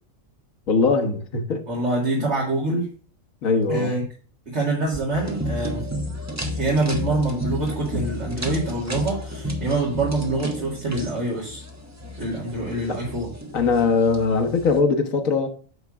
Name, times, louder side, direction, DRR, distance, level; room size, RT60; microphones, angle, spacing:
voice 1, 0.7-1.7 3.4-4.0 12.9-13.0 13.5-15.5, left 4 dB, 85° left, 1.5 m, -21 dB
voice 2, 1.7-2.9 3.7-4.0 4.5-5.8 6.5-11.6 12.2-13.3, right 2 dB, 55° right, 2.6 m, -25 dB
sound 1, 5.1-14.8, left 1 dB, 15° right, 1.1 m, -32 dB
9.3 x 3.5 x 6.0 m
omnidirectional pair, 1.4 m